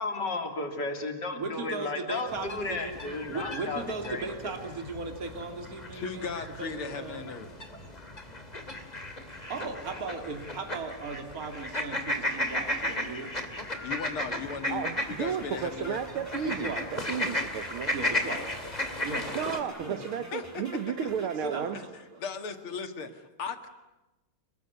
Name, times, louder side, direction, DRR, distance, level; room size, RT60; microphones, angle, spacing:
voice 1, 0.0-4.5, left 3 dB, 55° left, 5 dB, 3.9 m, -34 dB
voice 2, 1.3-6.3 6.6-7.4 9.5-13.3 16.4-16.9 17.9-19.5 19.8-20.0 21.4-22.2, right 3 dB, 45° right, 4 dB, 3.1 m, -37 dB
sound 1, 2.3-19.6, left 1 dB, 20° left, 2.8 m, -35 dB
voice 3, 5.9-7.6 13.8-16.0 20.3-20.6 21.0-21.1 21.7-21.8 22.2-23.7, left 5 dB, 85° left, 8 dB, 2.9 m, -37 dB
sound 2, 14.4-22.2, equal, 5° right, 5.9 m, -49 dB
voice 4, 14.7-17.9 19.4-21.8, right 8 dB, 90° right, 9 dB, 2.1 m, -33 dB
30.0 x 20.5 x 9.7 m, 1.0 s
omnidirectional pair, 2.3 m